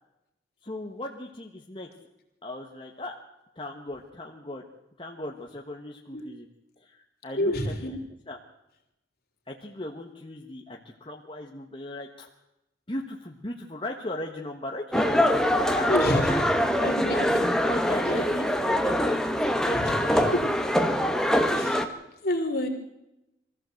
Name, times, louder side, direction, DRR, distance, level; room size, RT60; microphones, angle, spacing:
voice 1, 0.6-1.9 2.4-3.1 3.6-4.6 5.0-6.5 6.8-8.0 8.3-8.4 9.5-12.3 12.9-17.3 17.6-20.3, left 1 dB, 30° left, 0 dB, 1.5 m, -37 dB
voice 2, 7.4-7.9 15.9-16.4 16.8-17.4 18.0-18.2 19.7-20.4 21.5-21.9 22.2-22.7, left 1 dB, 55° left, 3 dB, 3.3 m, -28 dB
sound 1, 14.9-21.8, equal, 5° left, 1.2 m, -24 dB
23.5 x 15.0 x 7.9 m, 0.90 s
head